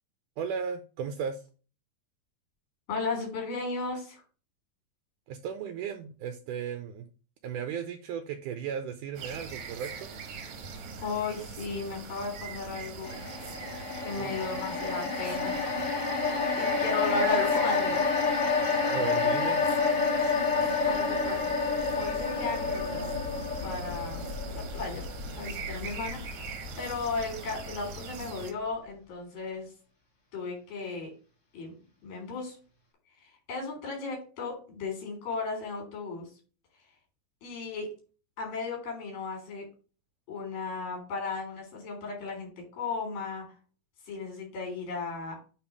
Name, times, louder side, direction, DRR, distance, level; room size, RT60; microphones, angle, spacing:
voice 1, 0.4-1.4 5.3-7.1 7.4-10.1 14.2-14.3 18.8-19.6, right 7 dB, 80° right, 8 dB, 2.0 m, -35 dB
voice 2, 2.9-4.2 11.0-13.1 14.0-15.6 16.6-18.0 20.8-21.4 21.8-23.1 23.6-24.2 24.5-25.0 25.4-26.3 26.8-29.7 30.3-31.1 31.5-31.8 32.0-32.6 33.2-36.3 37.4-38.0 38.4-39.7 40.3-43.5 44.1-45.4, left 4 dB, 75° left, 1 dB, 5.2 m, -35 dB
sound 1, 9.1-28.5, right 4 dB, 60° right, 1.7 m, -42 dB
sound 2, 13.0-27.4 27.7-27.9, left 4 dB, 35° left, 1.2 m, -29 dB
9.0 x 3.5 x 4.7 m, 0.36 s
omnidirectional pair, 4.2 m